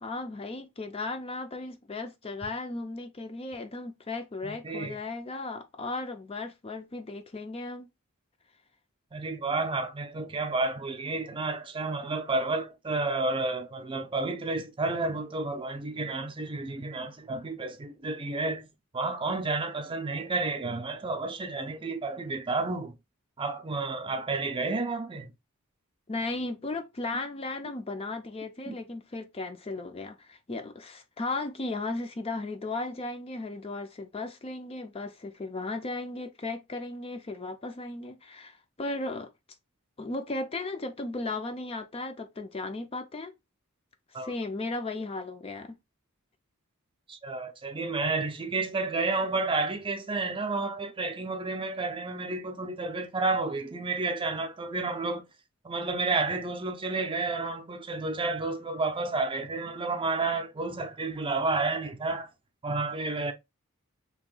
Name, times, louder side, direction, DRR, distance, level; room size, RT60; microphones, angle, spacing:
voice 1, 0.0-7.9 26.1-39.3 40.0-43.3 44.1-45.8, left 2 dB, 25° left, 0.4 m, -36 dB
voice 2, 4.4-5.0 9.1-18.7 18.9-22.9 23.4-25.3 28.7-28.8 44.1-44.3 47.1-55.3 55.6-62.3 62.6-63.3, right 3 dB, 25° right, 0.5 m, -31 dB
2.9 x 2.7 x 3.7 m
head